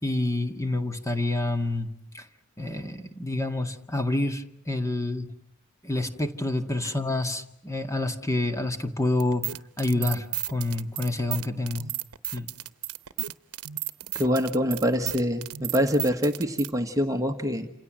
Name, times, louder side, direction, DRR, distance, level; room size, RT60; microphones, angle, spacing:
voice 1, 0.0-2.2 2.6-5.3 5.8-9.5 9.8-11.9 12.3-12.5, left 2 dB, 15° left, 7 dB, 1.9 m, -28 dB
sound 1, 9.2-16.7, right 14 dB, 80° right, 1.0 m, -33 dB
voice 2, 14.1-17.7, equal, 15° right, 5 dB, 1.4 m, -25 dB
28.5 x 27.5 x 7.6 m, 0.72 s
head